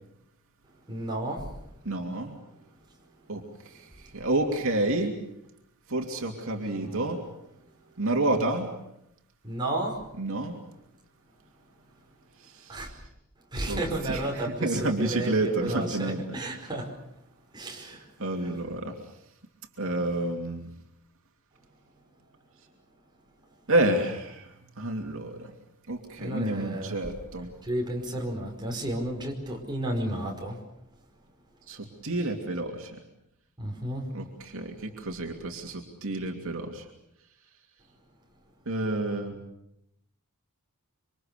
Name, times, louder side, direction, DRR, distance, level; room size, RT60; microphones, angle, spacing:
voice 1, 0.6-1.8 3.8-4.2 6.8-7.0 7.9-8.0 9.4-10.1 12.7-13.0 13.5-16.9 17.5-18.1 18.4-18.6 26.2-27.0 27.6-30.6 33.6-34.1, right 1 dB, 20° right, 0 dB, 5.1 m, -33 dB
voice 2, 1.8-2.4 3.3-5.1 5.9-7.2 8.0-8.7 10.2-10.5 12.4-12.9 13.7-16.2 18.2-19.0 19.8-20.6 23.7-25.5 25.9-27.5 31.7-33.0 34.1-36.9 38.7-39.4, right 2 dB, 65° right, 2 dB, 2.9 m, -29 dB
27.0 x 25.0 x 6.8 m, 0.81 s
head